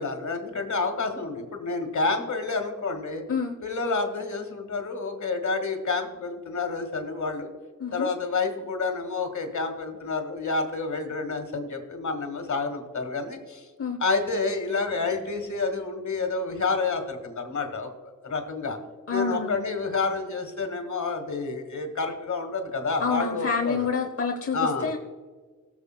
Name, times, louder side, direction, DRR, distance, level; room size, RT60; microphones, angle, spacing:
voice 1, 0.0-3.2 3.6-7.5 7.9-13.7 14.0-18.8 19.1-23.9 24.5-24.9, left 4 dB, 65° left, 5 dB, 1.8 m, -29 dB
voice 2, 19.1-19.8 23.0-25.0, left 5 dB, 45° left, 3 dB, 0.8 m, -28 dB
19.0 x 7.2 x 2.2 m, 1.4 s
cardioid pair, 55°, 32 cm